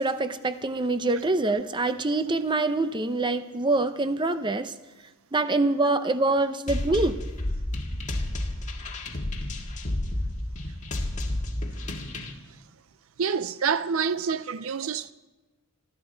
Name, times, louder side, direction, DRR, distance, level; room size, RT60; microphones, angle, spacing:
voice 1, 0.0-4.7 5.3-7.2, right 2 dB, 20° right, 0.6 m, -25 dB
sound 1, 6.7-12.3, left 1 dB, 35° left, 1.7 m, -31 dB
voice 2, 13.2-15.1, right 6 dB, 65° right, 0.5 m, -27 dB
26.5 x 13.0 x 3.9 m
head